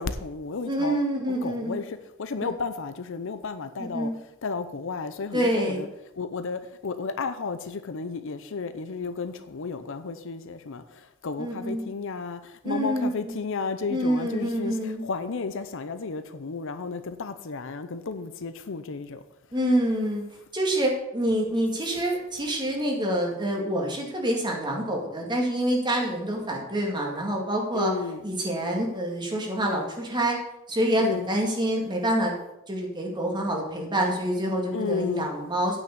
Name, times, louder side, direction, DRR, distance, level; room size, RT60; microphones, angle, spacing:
voice 1, 0.0-5.9 6.2-19.2 27.7-28.3 31.0-31.3 34.7-35.3, left 4 dB, 65° left, 0.7 m, -33 dB
voice 2, 0.7-1.8 2.4-2.5 3.9-4.1 5.3-5.9 11.4-11.8 12.6-13.3 13.9-15.0 19.5-20.2 20.5-27.9 28.2-30.4 30.7-32.3 32.7-35.8, right 1 dB, 20° right, 2.2 m, -26 dB
9.2 x 6.0 x 6.8 m
head